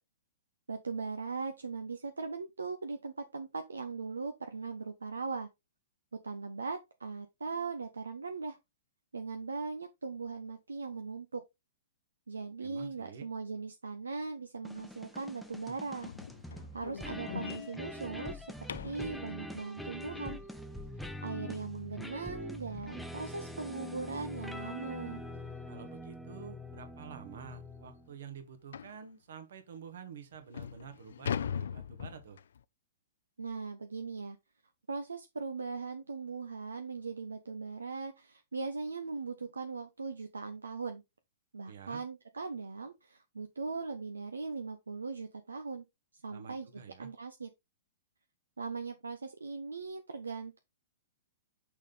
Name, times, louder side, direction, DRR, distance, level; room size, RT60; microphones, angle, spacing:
voice 1, 0.7-5.5 6.2-8.6 9.1-11.4 12.3-16.1 16.5-18.5 18.8-20.4 21.2-25.2 33.4-34.4 34.9-41.0 41.5-45.8 46.2-47.5 48.6-50.6, right 4 dB, 75° right, 0.7 m, -39 dB
voice 2, 12.6-13.3 25.7-32.4 41.6-42.0 46.3-47.1, right 7 dB, 60° right, 1.4 m, -49 dB
sound 1, 14.6-28.1, left 1 dB, ahead, 0.7 m, -44 dB
sound 2, 16.0-19.1 21.9-22.0 22.5-22.7 23.0-23.1 23.6-23.7 24.8-25.0 25.4-25.5 26.2-26.3 26.6-26.7 27.2-27.3 28.7-29.0 29.8-29.9 30.3-32.6, left 8 dB, 60° left, 0.3 m, -40 dB
6.3 x 3.8 x 4.0 m
figure-of-eight pair, 110°, 0 cm